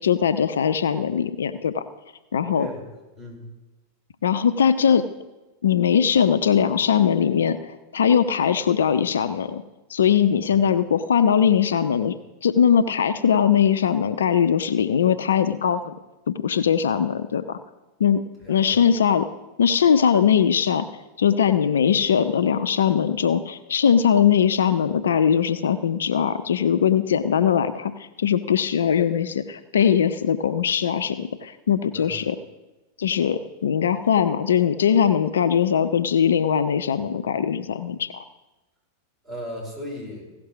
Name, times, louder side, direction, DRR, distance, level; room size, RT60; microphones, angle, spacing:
voice 1, 0.0-1.8 2.3-2.7 4.2-5.0 5.6-9.6 9.9-12.1 12.4-16.0 16.3-17.6 18.0-18.2 18.5-19.3 19.6-20.9 21.2-27.9 28.2-32.4 33.0-38.2, left 8 dB, 65° left, 11 dB, 0.5 m, -20 dB
voice 2, 2.5-2.8 3.1-3.5 18.4-18.9 31.9-32.2 39.2-40.3, left 1 dB, 25° right, -3 dB, 4.8 m, -36 dB
16.0 x 6.0 x 6.2 m, 1.1 s
figure-of-eight pair, 90°, 0 cm